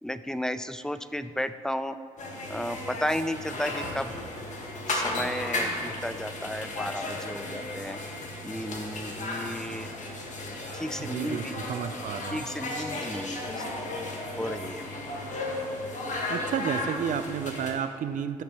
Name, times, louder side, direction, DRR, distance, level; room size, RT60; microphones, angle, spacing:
voice 1, 0.0-2.0 2.5-4.2 4.9-8.0 8.4-9.9 10.7-11.5 12.3-13.6 14.4-15.0, equal, 5° left, 12 dB, 0.4 m, -33 dB
sound 1, 2.2-17.7, left 2 dB, 50° left, 1.6 m, -34 dB
voice 2, 11.0-12.4 16.3-18.4, right 8 dB, 55° right, 10 dB, 0.6 m, -31 dB
14.0 x 5.9 x 3.1 m, 2.1 s
hypercardioid pair, 55°, 16 cm